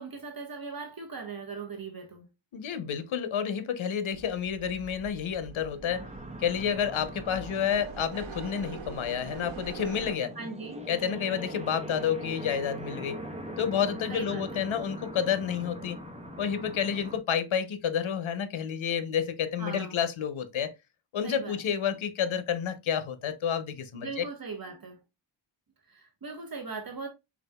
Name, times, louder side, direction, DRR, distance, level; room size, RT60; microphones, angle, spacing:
voice 1, 0.0-2.3 10.4-10.9 14.1-14.6 19.6-20.0 21.2-21.6 23.9-25.0 25.9-27.1, right 4 dB, 50° right, 1.3 m, -39 dB
voice 2, 2.5-6.1 6.4-10.4 10.9-13.2 13.6-16.0 16.4-20.7 21.1-24.2, left 8 dB, 85° left, 0.8 m, -30 dB
sound 1, 4.1-10.2, right 4 dB, 90° right, 1.3 m, -43 dB
sound 2, 5.9-17.2, right 1 dB, 15° right, 0.9 m, -42 dB
4.9 x 4.2 x 2.2 m
wide cardioid pair, 80°, 46 cm